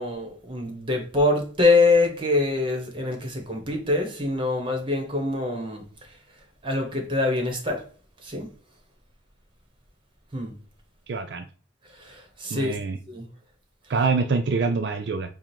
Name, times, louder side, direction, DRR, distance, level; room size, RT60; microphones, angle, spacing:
voice 1, 0.0-5.8 6.6-7.8 8.2-8.5 10.3-10.5 12.0-12.8 13.1-13.3, left 2 dB, 30° right, 1.2 m, -24 dB
voice 2, 11.1-11.5 12.5-13.0 13.9-15.4, right 4 dB, 65° right, 0.4 m, -25 dB
5.0 x 2.4 x 4.4 m
head